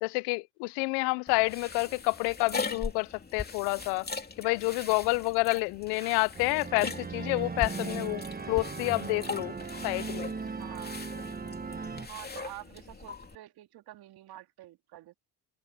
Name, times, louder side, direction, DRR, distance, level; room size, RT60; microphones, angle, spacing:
voice 1, 0.0-4.1 4.4-9.5 9.8-10.3, left 29 dB, 75° left, 0.7 m, -29 dB
sound 1, 1.3-13.3, left 4 dB, 25° left, 2.9 m, -40 dB
sound 2, 6.3-12.1, right 4 dB, 20° right, 1.4 m, -38 dB
voice 2, 10.6-11.0 12.1-15.1, right 15 dB, 65° right, 2.4 m, -47 dB
hypercardioid pair, 65°, 40 cm